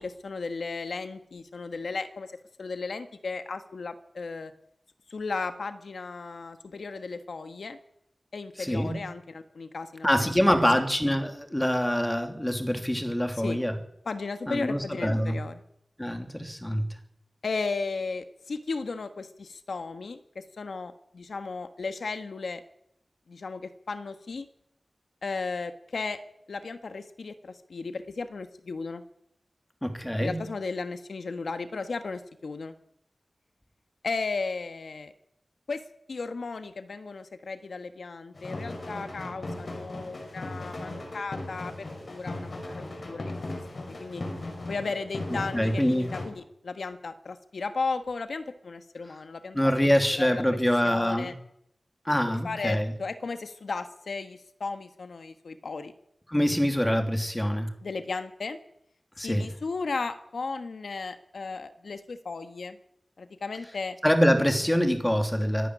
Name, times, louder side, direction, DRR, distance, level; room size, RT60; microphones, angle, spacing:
voice 1, 0.0-2.3 2.6-4.5 5.1-7.8 8.3-10.6 13.4-13.6 14.0-15.6 17.4-22.6 23.3-24.5 25.2-26.2 26.5-29.0 30.2-32.7 34.0-35.1 35.7-35.8 36.1-42.6 43.1-43.3 43.7-44.2 44.7-50.6 50.8-51.3 52.4-55.9 57.8-58.6 59.2-62.8 63.2-64.0, left 4 dB, 80° left, 9 dB, 1.4 m, -35 dB
voice 2, 8.6-9.0 10.0-13.7 14.5-15.4 16.0-16.8 29.8-30.4 45.5-46.1 49.5-51.3 52.0-52.9 56.3-57.7 59.2-59.5 64.0-65.7, equal, 10° left, 6 dB, 3.1 m, -25 dB
sound 1, 38.3-46.3, left 2 dB, 55° left, 6.0 m, -37 dB
25.5 x 11.0 x 9.8 m, 0.74 s
wide cardioid pair, 90°, 0 cm